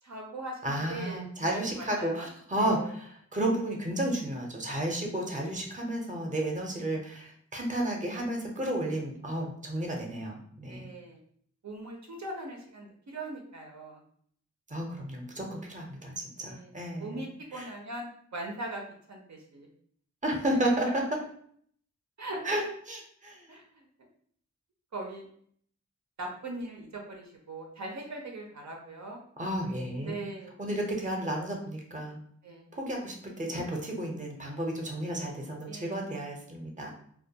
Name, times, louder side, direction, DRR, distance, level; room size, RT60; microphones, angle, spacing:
voice 1, 0.0-2.2 2.6-2.9 10.6-11.2 11.6-14.0 16.4-16.7 17.0-18.8 19.1-19.7 20.5-20.6 22.2-22.4 23.5-23.9 24.9-25.3 26.2-29.2 30.0-30.5 32.4-32.7 35.6-36.0, right 2 dB, 75° right, 1 dB, 0.5 m, -40 dB
voice 2, 0.6-10.9 14.7-17.2 17.5-17.7 20.2-21.0 22.4-23.4 29.4-30.2 30.6-32.2 32.7-36.9, right 1 dB, 25° right, 1 dB, 0.6 m, -32 dB
2.3 x 2.2 x 2.7 m, 0.62 s
wide cardioid pair, 40°, 29 cm